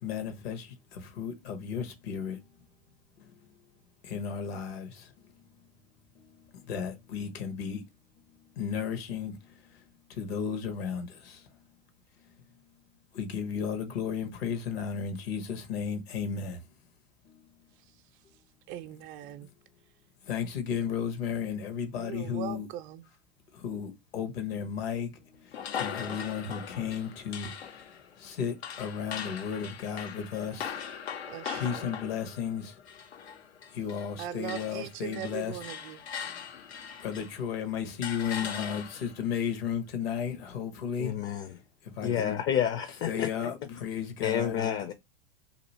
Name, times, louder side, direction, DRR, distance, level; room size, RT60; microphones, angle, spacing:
voice 1, 0.0-2.4 3.2-3.3 4.0-5.1 6.2-6.3 6.5-7.8 8.6-9.8 10.1-11.5 13.1-16.6 17.2-17.4 19.2-19.3 20.2-22.7 23.5-30.8 31.5-32.8 33.7-35.6 36.2-36.4 37.0-41.1 41.8-42.4 43.1-44.6, left 7 dB, 70° left, 1.2 m, -34 dB
voice 2, 18.7-19.5 21.9-23.0 31.3-31.9 34.2-36.0, right 12 dB, 50° right, 0.5 m, -40 dB
sound 1, 25.5-34.2 34.4-37.5 38.0-39.2, left 7 dB, 90° left, 0.6 m, -40 dB
voice 3, 41.0-41.5 42.0-43.3 44.2-44.9, left 9 dB, 40° left, 0.6 m, -29 dB
2.9 x 2.7 x 4.0 m
hypercardioid pair, 100°, 31 cm